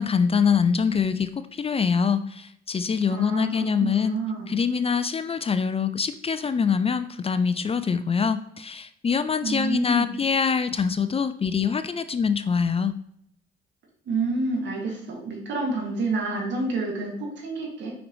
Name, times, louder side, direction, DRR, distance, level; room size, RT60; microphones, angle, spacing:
voice 1, 0.0-4.2 4.5-12.9, left 6 dB, 30° left, 12 dB, 0.5 m, -24 dB
voice 2, 3.1-4.6 9.4-10.2 14.1-17.9, right 3 dB, 65° right, -1 dB, 2.2 m, -29 dB
5.7 x 5.3 x 3.1 m, 0.70 s
supercardioid pair, 60°, 20 cm